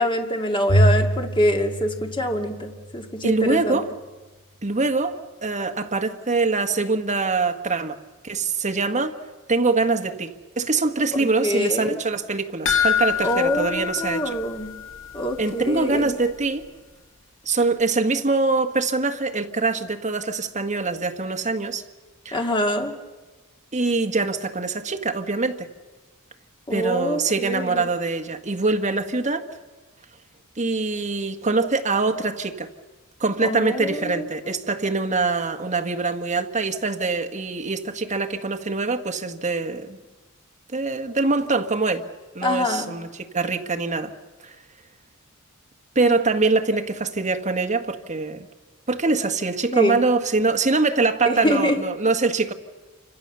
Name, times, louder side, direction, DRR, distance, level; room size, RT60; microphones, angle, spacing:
voice 1, 0.0-3.8 11.2-12.0 13.2-14.7 15.1-16.2 22.3-22.9 26.7-27.9 33.4-34.3 42.4-42.9 49.7-50.0 51.3-51.8, equal, 25° left, 2.3 m, -25 dB
Bowed string instrument, 0.7-3.1, equal, 80° left, 6.4 m, -23 dB
voice 2, 3.2-3.9 4.6-8.0 8.2-9.1 9.5-14.4 15.4-16.7 17.4-21.8 22.2-22.5 23.7-25.7 26.7-29.4 30.6-32.7 33.2-40.0 40.7-42.0 42.3-44.1 44.4-44.5 45.9-48.5 48.9-52.5, right 3 dB, 35° right, 1.6 m, -24 dB
sound 1, 12.7-15.2 15.5-15.6 16.0-16.1, left 9 dB, 65° left, 3.0 m, -25 dB
28.5 x 25.5 x 6.9 m
head